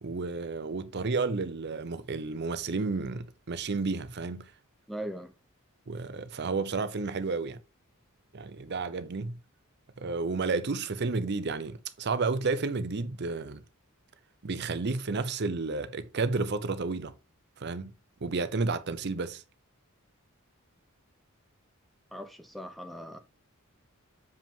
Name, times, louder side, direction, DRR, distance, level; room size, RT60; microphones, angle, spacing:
voice 1, 0.0-4.5 5.9-7.6 8.3-9.4 10.0-13.6 14.4-17.1 17.6-17.9 18.2-19.4, right 4 dB, 50° right, 0.6 m, -31 dB
voice 2, 4.9-5.3 22.1-23.2, equal, ahead, 0.6 m, -39 dB
7.2 x 5.1 x 3.6 m
head